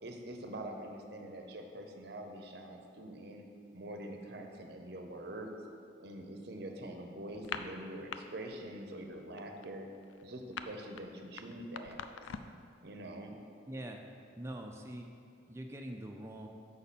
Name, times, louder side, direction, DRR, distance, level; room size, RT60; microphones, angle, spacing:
voice 1, 0.0-3.4 3.7-5.5 6.0-9.9 10.2-12.2 12.8-13.3, right 1 dB, 55° right, 3 dB, 0.7 m, -45 dB
sound 1, 7.3-8.2 8.5-8.8 9.1-12.6, left 7 dB, 80° left, 0.3 m, -43 dB
voice 2, 13.7-14.0 14.4-15.1 15.5-16.5, right 1 dB, 15° right, 2 dB, 0.4 m, -43 dB
7.0 x 5.3 x 4.1 m, 2.4 s
head